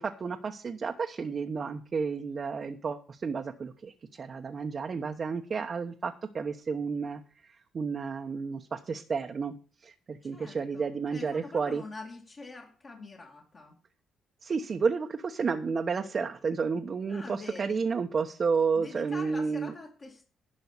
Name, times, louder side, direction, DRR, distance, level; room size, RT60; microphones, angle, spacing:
voice 1, 0.0-9.5 9.8-11.8 14.4-19.7, right 5 dB, 45° right, 1.1 m, -31 dB
voice 2, 10.3-13.8 17.1-17.8 18.8-20.2, left 3 dB, 40° left, 2.5 m, -45 dB
11.5 x 5.6 x 8.2 m
cardioid pair, 90°, 0 cm